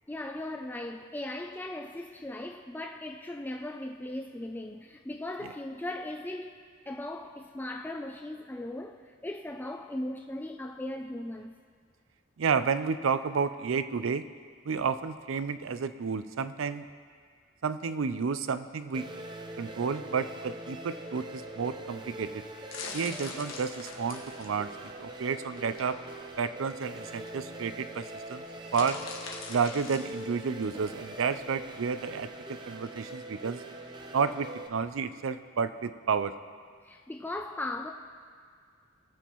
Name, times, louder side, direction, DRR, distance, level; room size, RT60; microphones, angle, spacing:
voice 1, 0.1-6.6 6.9-11.5 36.8-37.9, left 1 dB, 10° left, 3 dB, 0.3 m, -38 dB
voice 2, 12.4-14.3 14.6-16.9 17.6-19.1 19.6-22.4 22.9-26.0 26.4-28.4 28.7-29.0 29.5-33.6 34.1-36.3, right 5 dB, 80° right, 12 dB, 0.5 m, -31 dB
sound 1, 18.9-34.7, right 1 dB, 25° right, 0.7 m, -43 dB
sound 2, 21.7-32.2, left 5 dB, 90° left, 1.4 m, -45 dB
20.0 x 7.2 x 3.0 m, 2.1 s
head